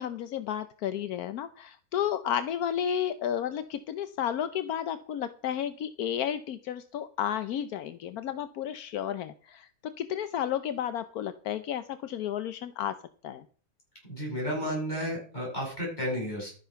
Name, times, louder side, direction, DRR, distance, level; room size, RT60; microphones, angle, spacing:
voice 1, 0.0-9.7 10.0-13.0 13.2-13.4, left 9 dB, 80° left, 11 dB, 1.2 m, -32 dB
voice 2, 14.1-16.5, equal, 30° left, -3 dB, 7.6 m, -32 dB
12.0 x 10.0 x 5.7 m, 0.43 s
omnidirectional pair, 1.6 m